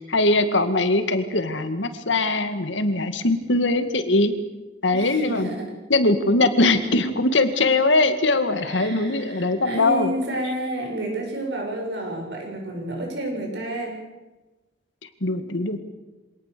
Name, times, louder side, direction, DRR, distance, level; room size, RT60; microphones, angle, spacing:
voice 1, 0.0-4.3 4.8-5.5 5.9-10.1 15.2-15.8, left 2 dB, 75° left, 9 dB, 2.1 m, -21 dB
voice 2, 4.9-5.7 8.6-14.0 15.3-15.6, right 1 dB, 65° right, 1 dB, 7.4 m, -30 dB
25.5 x 18.5 x 6.9 m, 1.1 s
head